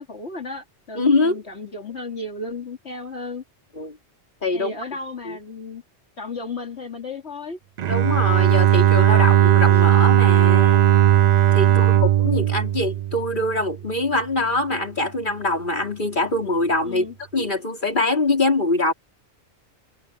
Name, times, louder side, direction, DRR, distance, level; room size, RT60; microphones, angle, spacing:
voice 1, 0.0-3.4 4.5-5.8 6.2-7.6 11.6-12.0 16.8-17.1, left 3 dB, 75° left, 3.0 m, -34 dB
voice 2, 1.0-1.4 3.8-4.0 4.4-4.7 5.3-5.4 7.9-10.8 11.5-17.1 17.3-18.9, left 2 dB, 45° left, 4.4 m, -23 dB
Bowed string instrument, 7.8-13.7, right 11 dB, 60° right, 0.4 m, -17 dB
omnidirectional pair, 1.2 m